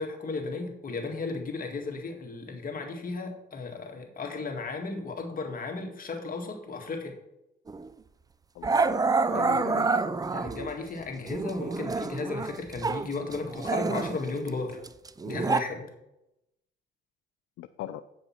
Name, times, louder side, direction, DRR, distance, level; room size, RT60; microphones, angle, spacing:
voice 1, 0.0-7.2 9.3-9.6 10.3-14.8 15.3-15.9, left 3 dB, 45° left, 2 dB, 1.9 m, -35 dB
Growling, 7.7-7.9 8.6-10.7 11.3-13.1 13.3-15.6, right 4 dB, 20° right, 0.4 m, -28 dB
voice 2, 8.5-10.1 17.6-18.0, left 13 dB, 90° left, 10 dB, 0.4 m, -39 dB
8.5 x 5.4 x 5.7 m, 0.86 s
cardioid pair, 90°, 20 cm